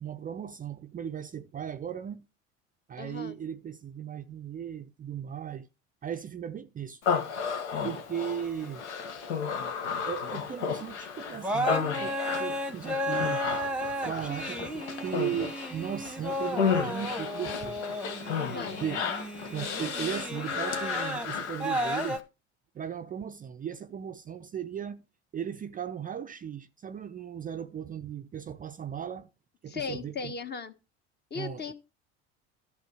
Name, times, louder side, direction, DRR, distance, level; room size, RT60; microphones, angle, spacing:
voice 1, 0.0-2.3 2.9-5.7 6.0-7.0 7.8-8.8 10.1-13.4 13.8-17.9 18.8-19.0 19.5-22.2 22.7-25.1 25.3-29.3 29.6-30.3 31.3-31.7, right 9 dB, 25° right, 0.5 m, -37 dB
voice 2, 3.0-3.4 18.4-18.8 29.7-30.7 31.3-31.7, left 5 dB, 30° left, 1.2 m, -37 dB
Human voice, 7.0-22.2, left 6 dB, 70° left, 1.4 m, -33 dB
sound 1, 8.4-10.0 10.8-11.0 11.3-22.2, equal, 5° right, 1.1 m, -34 dB
12.0 x 7.2 x 4.8 m
figure-of-eight pair, 65°, 35 cm